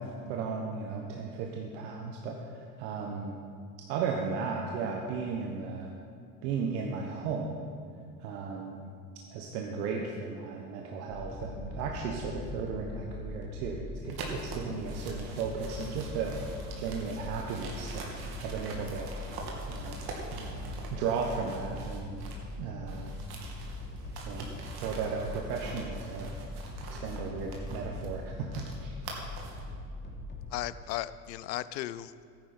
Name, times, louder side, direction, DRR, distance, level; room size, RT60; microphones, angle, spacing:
voice 1, 0.0-3.4 3.9-5.9 6.4-7.7 8.2-8.9 9.3-16.4 16.8-18.1 18.4-19.1 19.7-20.0 20.3-22.2 22.6-23.1 24.2-24.5 24.8-26.3 27.0-28.5 28.8-28.9, right 5 dB, 70° right, 1 dB, 1.3 m, -35 dB
sound 1, 11.1-30.5, left 2 dB, 20° left, 2.8 m, -41 dB
sound 2, 14.1-22.5 22.8-29.7, right 3 dB, 50° right, 2.5 m, -45 dB
voice 2, 30.5-32.2, left 14 dB, 85° left, 16 dB, 0.6 m, -36 dB
14.0 x 10.0 x 4.4 m, 2.4 s
hypercardioid pair, 80°, 49 cm